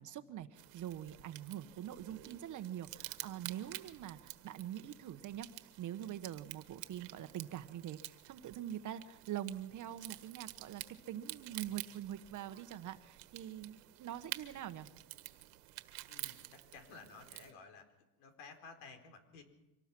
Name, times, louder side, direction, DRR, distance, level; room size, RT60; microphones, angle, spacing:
voice 1, 0.0-14.9, right 11 dB, 40° right, 10 dB, 1.1 m, -44 dB
sound 1, 0.6-17.5, right 19 dB, 80° right, 1.7 m, -50 dB
voice 2, 16.1-17.9 18.2-19.4, left 4 dB, 75° left, 6 dB, 4.4 m, -54 dB
25.0 x 19.0 x 6.0 m, 0.97 s
cardioid pair, 140°, 48 cm